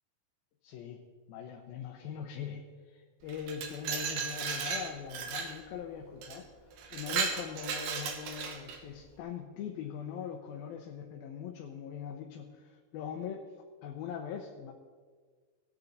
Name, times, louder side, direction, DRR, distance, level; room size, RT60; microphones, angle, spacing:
voice 1, 0.6-1.0 1.3-13.4 13.8-14.7, left 8 dB, 85° left, 1 dB, 2.7 m, -41 dB
Glass, 3.3-5.6 6.2-6.4 6.8-8.8, right 6 dB, 75° right, 2.8 m, -35 dB
19.5 x 8.7 x 4.0 m, 1.5 s
omnidirectional pair, 4.2 m